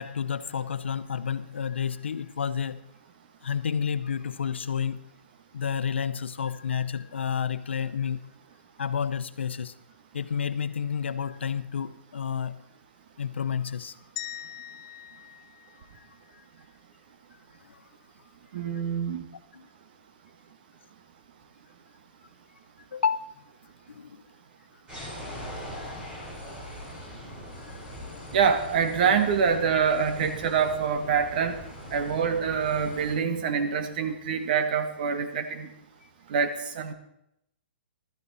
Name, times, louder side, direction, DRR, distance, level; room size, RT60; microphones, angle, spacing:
voice 1, 0.0-2.9 3.4-5.1 5.5-8.3 8.8-9.7 10.1-12.6 13.2-14.0 17.6-17.8 19.5-19.7 22.9-23.4 23.9-24.2 25.8-26.0 27.7-27.8, left 7 dB, 85° left, 14 dB, 0.8 m, -30 dB
sound 1, 14.2-16.4, left 13 dB, 30° left, 0.6 m, -42 dB
voice 2, 18.5-19.2 28.3-31.6 31.9-35.7 36.3-36.9, right 6 dB, 50° right, 8 dB, 1.6 m, -25 dB
sound 2, 24.9-33.1, equal, 15° right, 4.5 m, -41 dB
15.5 x 12.5 x 4.2 m, 0.81 s
hypercardioid pair, 150°, 6 cm